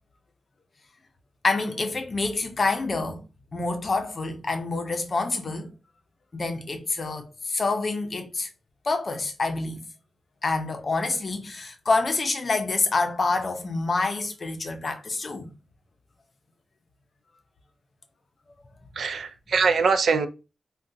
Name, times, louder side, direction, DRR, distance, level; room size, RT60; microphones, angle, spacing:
voice 1, 1.4-3.2 3.5-5.7 6.3-8.5 8.9-9.9 10.4-15.5, left 3 dB, 45° left, 0.6 m, -27 dB
voice 2, 18.9-20.3, right 5 dB, 75° right, 0.3 m, -23 dB
3.7 x 2.2 x 2.6 m
wide cardioid pair, 125°, 0 cm